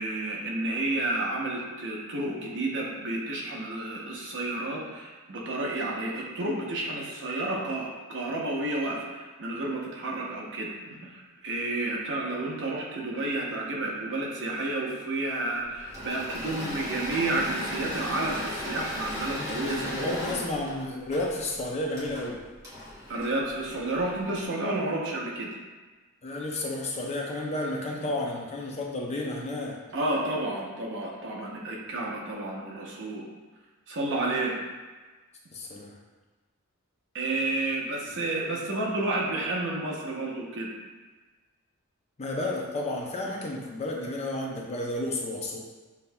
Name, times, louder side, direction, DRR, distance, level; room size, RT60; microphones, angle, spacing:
voice 1, 0.0-20.4 23.1-25.5 29.9-33.2 33.9-34.6 37.1-40.7, right 2 dB, 55° right, -2 dB, 0.8 m, -31 dB
Engine / Mechanisms, 15.8-24.2, left 1 dB, 15° right, 1.2 m, -36 dB
voice 2, 19.3-22.4 26.2-29.8 35.5-36.0 42.2-45.6, left 2 dB, 30° left, -1 dB, 0.6 m, -32 dB
6.9 x 2.7 x 2.3 m, 1.3 s
head